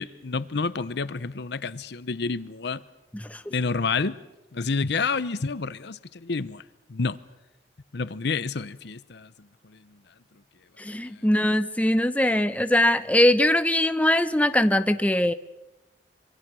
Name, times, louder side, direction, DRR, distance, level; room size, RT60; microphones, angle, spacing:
voice 1, 0.0-2.8 3.5-4.2 4.5-6.6 6.9-7.2 7.9-9.3, left 4 dB, 65° left, 0.8 m, -29 dB
voice 2, 3.1-3.5 10.8-15.3, left 1 dB, 10° left, 0.7 m, -22 dB
26.5 x 24.0 x 6.2 m
head